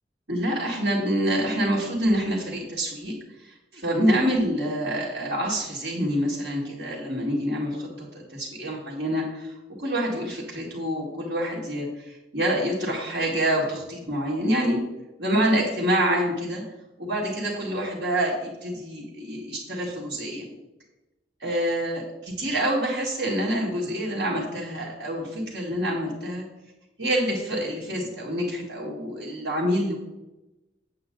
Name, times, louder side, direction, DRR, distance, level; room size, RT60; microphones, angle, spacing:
voice 1, 0.3-14.8 15.2-16.6 17.0-20.5 21.4-26.5 27.0-30.0, equal, 70° right, -7 dB, 2.3 m, -27 dB
8.5 x 8.1 x 3.9 m, 1.0 s
head